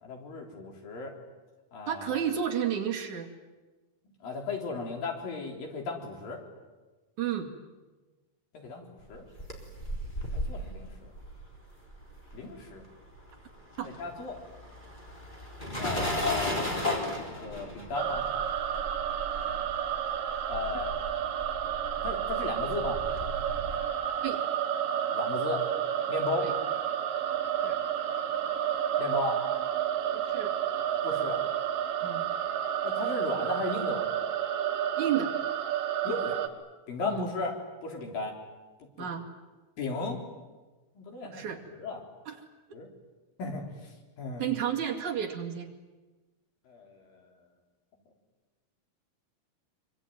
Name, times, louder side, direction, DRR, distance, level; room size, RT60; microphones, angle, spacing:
voice 1, 0.0-1.2 1.7-2.2 4.2-6.4 8.5-9.2 10.3-11.1 12.3-12.8 13.8-14.4 15.8-18.3 20.5-21.0 22.0-23.0 25.1-25.6 26.1-26.5 29.0-29.4 31.0-31.4 32.8-34.1 36.0-36.4 36.9-37.6 37.8-38.4 38.8-39.1 39.8-40.2 41.0-41.5 41.8-42.0 42.7-42.9 43.4-43.7 44.2-44.5 46.7-47.3, left 3 dB, 90° left, 2 dB, 5.5 m, -35 dB
voice 2, 1.9-3.3 7.2-7.5 13.8-13.9 24.2-24.4 26.4-26.5 27.6-27.8 30.1-30.5 32.0-32.3 35.0-35.3 37.1-37.3 39.0-39.3 41.2-41.6 42.3-42.4 44.4-45.7, right 9 dB, 60° right, 2 dB, 3.7 m, -31 dB
sound 1, 9.1-12.8 13.0-23.8, left 1 dB, 15° left, 3.8 m, -36 dB
sound 2, 17.9-36.5, right 10 dB, 80° right, 3.3 m, -31 dB
26.0 x 24.0 x 9.3 m, 1.2 s
omnidirectional pair, 3.9 m